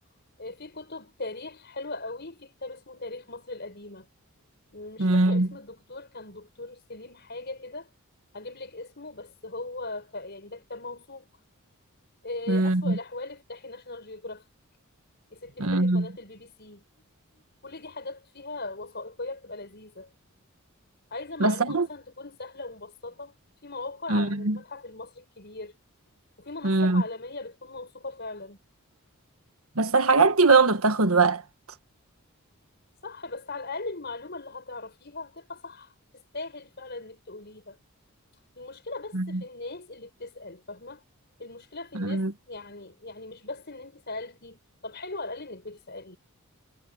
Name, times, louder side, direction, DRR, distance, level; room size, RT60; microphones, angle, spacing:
voice 1, 0.4-4.1 4.7-7.9 8.3-11.3 12.2-14.4 15.3-16.8 17.3-20.1 21.1-23.3 23.6-25.7 26.4-28.6 33.0-37.8 38.6-41.0 41.4-46.2, left 3 dB, 50° left, 5.9 m, -39 dB
voice 2, 5.0-5.5 12.5-13.0 15.6-16.1 21.4-21.9 24.1-24.6 26.6-27.0 29.7-31.4 39.1-39.4 41.9-42.3, right 3 dB, 75° right, 1.6 m, -21 dB
head